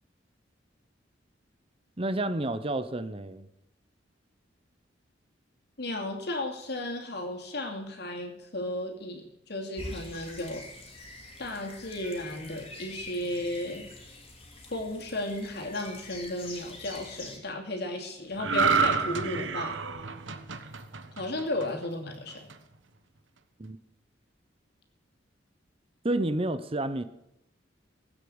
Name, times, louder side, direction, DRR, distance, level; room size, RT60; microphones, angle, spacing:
voice 1, 2.0-3.5 23.6-23.8 26.0-27.0, right 1 dB, 30° right, 0.8 m, -30 dB
voice 2, 5.8-10.7 11.4-13.9 14.7-19.8 21.2-22.5, left 1 dB, 60° left, 2.7 m, -34 dB
sound 1, 9.8-17.4, left 2 dB, 30° left, 2.8 m, -45 dB
sound 2, 18.4-21.9 22.3-22.5, right 5 dB, 80° right, 1.1 m, -28 dB
17.0 x 8.7 x 7.9 m
head